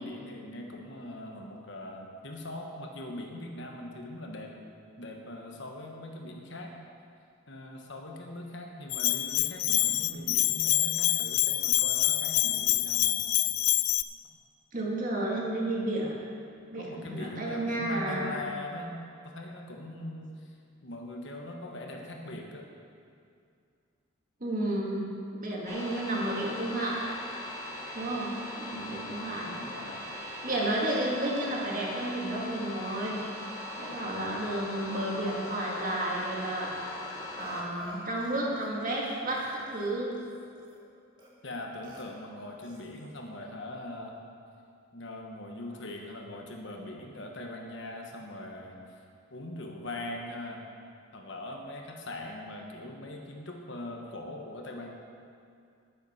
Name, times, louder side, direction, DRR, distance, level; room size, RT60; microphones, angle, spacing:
voice 1, 0.0-4.5 5.0-6.7 7.5-13.3 16.7-19.0 19.2-20.5 20.8-22.7 28.0-28.2 28.7-29.2 29.6-30.0 34.0-34.4 41.4-44.2 44.9-48.8 49.3-50.6 51.1-54.9, left 1 dB, 60° left, 1 dB, 1.3 m, -41 dB
Bell, 8.9-14.0, left 17 dB, 90° left, 0.4 m, -26 dB
voice 2, 14.7-16.2 16.7-18.5 24.4-27.0 27.9-29.6 30.4-33.2 33.8-37.0 37.4-40.2, right 1 dB, 40° right, -3 dB, 2.0 m, -32 dB
sound 1, 25.7-37.6, left 1 dB, 15° left, 1.4 m, -40 dB
Burping eructation, 37.4-38.7 39.0-40.8 41.2-41.3 41.8-42.0 42.6-43.2, equal, 20° right, 1.6 m, -52 dB
10.5 x 9.3 x 5.6 m, 2.4 s
head